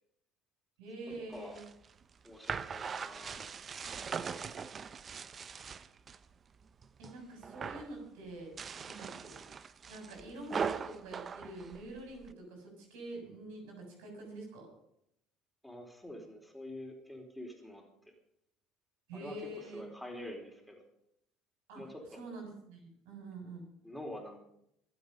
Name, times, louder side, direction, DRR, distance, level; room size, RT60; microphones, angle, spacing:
voice 1, 0.8-1.6 7.0-8.5 8.8-9.4 9.9-14.7 19.1-19.9 21.7-21.8 22.2-23.6, right 2 dB, 80° right, 2 dB, 6.8 m, -46 dB
voice 2, 1.3-1.6 2.2-3.5 3.8-4.7 15.6-18.1 19.1-20.8 21.7-22.2 23.8-24.4, left 1 dB, 5° left, 1 dB, 4.2 m, -47 dB
sound 1, 1.3-6.2 6.6-7.2 7.4-7.9 8.4-12.3, right 6 dB, 35° right, 0.8 m, -41 dB
24.5 x 8.2 x 5.5 m, 0.76 s
hypercardioid pair, 75°, 0 cm